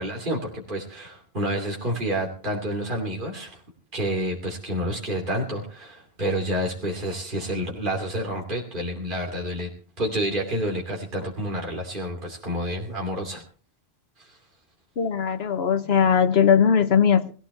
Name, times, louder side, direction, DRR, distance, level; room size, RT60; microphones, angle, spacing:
voice 1, 0.0-3.6 3.9-9.7 10.0-13.4 14.2-14.4, equal, 50° right, -1 dB, 3.2 m, -29 dB
voice 2, 15.0-17.3, left 7 dB, 75° left, 12 dB, 1.1 m, -19 dB
19.5 x 16.0 x 3.3 m, 0.39 s
omnidirectional pair, 1.1 m